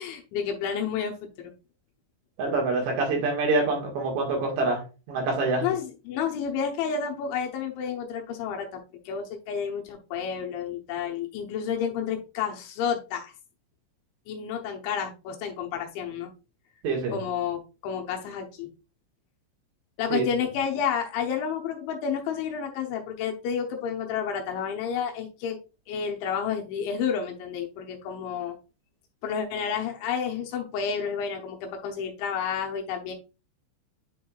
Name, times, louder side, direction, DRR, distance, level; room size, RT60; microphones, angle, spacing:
voice 1, 0.0-1.5 5.6-8.8 9.1-13.3 14.3-16.3 17.1-18.7 20.0-25.6 25.9-28.6 29.2-33.1, left 7 dB, 75° left, 1 dB, 3.1 m, -30 dB
voice 2, 2.4-4.8 5.1-5.6 16.8-17.2 20.1-20.3, right 3 dB, 65° right, 0 dB, 3.6 m, -25 dB
10.0 x 4.6 x 2.3 m, 0.31 s
omnidirectional pair, 5.8 m